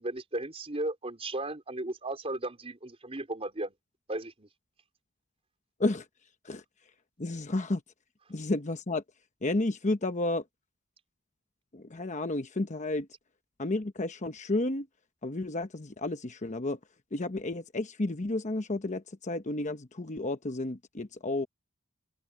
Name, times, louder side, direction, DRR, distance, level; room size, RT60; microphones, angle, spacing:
voice 1, 0.0-3.7 4.1-4.5, right 2 dB, 30° right, 4.5 m, -35 dB
voice 2, 7.2-7.8 8.3-9.0 9.4-10.4 11.7-13.1 13.6-14.9 15.2-16.8 17.1-21.5, left 2 dB, 35° left, 1.0 m, -31 dB
head